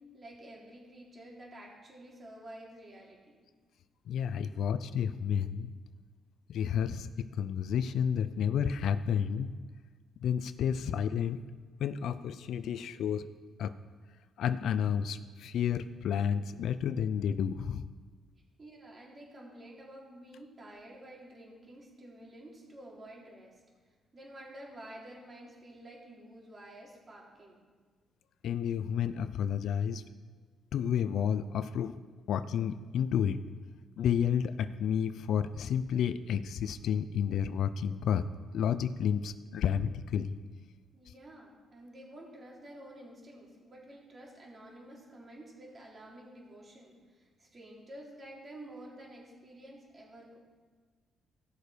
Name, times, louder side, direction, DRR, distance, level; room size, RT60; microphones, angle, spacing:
voice 1, 0.0-3.5 4.5-4.7 18.6-23.6 24.1-27.7 40.9-50.4, right 1 dB, 35° right, -3 dB, 3.6 m, -50 dB
voice 2, 4.1-5.7 6.5-9.5 10.2-11.4 11.8-13.3 13.6-13.7 14.4-17.9 28.4-30.0 30.7-32.0 32.3-33.4 34.0-38.3 38.5-40.3, left 8 dB, 75° left, 13 dB, 0.5 m, -31 dB
16.5 x 6.4 x 5.1 m, 1.5 s
cardioid pair, 90°, 0 cm